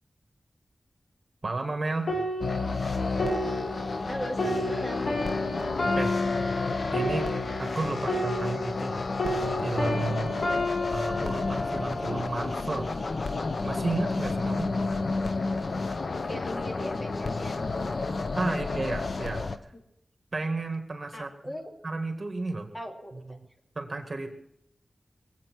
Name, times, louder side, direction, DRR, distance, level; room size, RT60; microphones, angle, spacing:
voice 1, 1.4-2.2 5.9-6.2 6.9-7.3 7.6-9.1 9.6-10.3 10.9-12.9 13.6-14.7 18.4-19.4 20.3-21.5 21.8-22.7 23.1-23.4 23.8-24.3, right 3 dB, 50° right, 5 dB, 2.1 m, -32 dB
sound 1, 2.1-8.9 9.2-12.8 13.4-13.6, left 1 dB, 90° left, 4.0 m, -32 dB
sound 2, 2.4-19.6, left 3 dB, 65° left, 0.9 m, -31 dB
voice 2, 4.1-5.2 15.2-15.3 16.3-17.6 18.4-18.6 21.1-21.7 22.7-23.4, equal, 25° left, 2 dB, 2.5 m, -38 dB
21.0 x 8.5 x 6.3 m, 0.76 s
wide cardioid pair, 65°, 0 cm